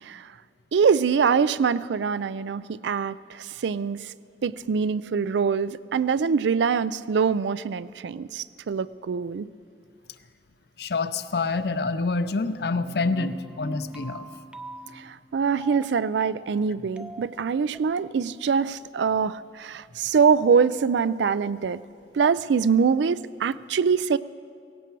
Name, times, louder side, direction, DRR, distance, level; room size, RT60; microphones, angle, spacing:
voice 1, 0.7-4.1 4.4-9.5 14.9-21.8 22.1-24.2, right 6 dB, 80° right, 17 dB, 0.4 m, -24 dB
voice 2, 10.8-14.2, left 3 dB, 60° left, 12 dB, 0.6 m, -27 dB
sound 1, 12.6-17.8, right 1 dB, 5° right, 0.5 m, -42 dB
17.5 x 17.0 x 4.6 m, 2.3 s
head